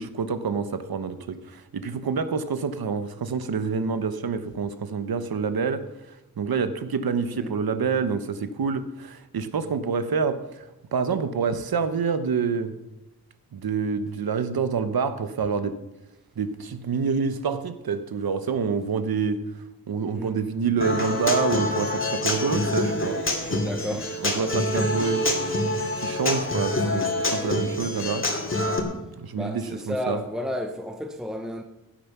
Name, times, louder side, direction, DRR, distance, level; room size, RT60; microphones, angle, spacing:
voice 1, 0.0-5.9 6.4-10.6 10.9-12.7 13.5-15.8 16.4-23.2 23.5-23.7 24.2-25.5 26.0-28.3 29.2-30.2, right 5 dB, 75° right, 1.2 m, -27 dB
Human voice / Acoustic guitar, 20.8-28.8, left 2 dB, 35° left, 2.6 m, -26 dB
voice 2, 23.4-24.6 29.3-31.6, left 1 dB, ahead, 0.9 m, -33 dB
16.0 x 10.0 x 6.0 m
wide cardioid pair, 105°, 36 cm